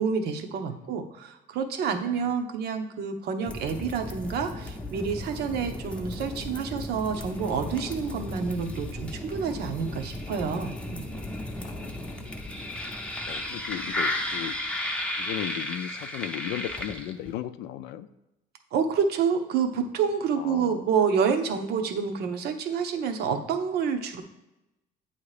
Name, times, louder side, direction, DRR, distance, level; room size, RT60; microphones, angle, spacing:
voice 1, 0.0-11.0 18.7-24.2, right 6 dB, 70° right, 6 dB, 0.8 m, -28 dB
voice 2, 0.5-0.9 11.6-12.5 13.3-14.6 15.2-18.1 20.4-20.9, left 12 dB, 85° left, 12 dB, 0.4 m, -36 dB
sound 1, 3.5-17.4, left 1 dB, 5° left, 0.6 m, -34 dB
8.2 x 2.9 x 4.9 m, 0.95 s
cardioid pair, 110°, 17 cm